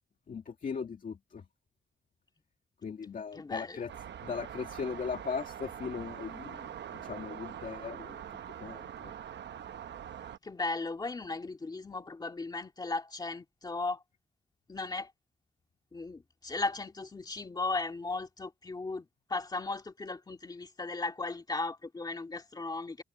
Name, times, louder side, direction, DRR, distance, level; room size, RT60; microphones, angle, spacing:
voice 1, 0.3-1.4 2.8-3.9 4.2-6.7 7.0-8.2 8.6-9.1, left 6 dB, 50° left, 2.2 m, -38 dB
voice 2, 3.3-3.8 10.4-14.0 14.7-15.1 15.9-23.0, left 3 dB, 20° left, 2.3 m, -36 dB
sound 1, 3.9-10.4, right 9 dB, 75° right, 0.9 m, -43 dB
wide cardioid pair, 175°, 18 cm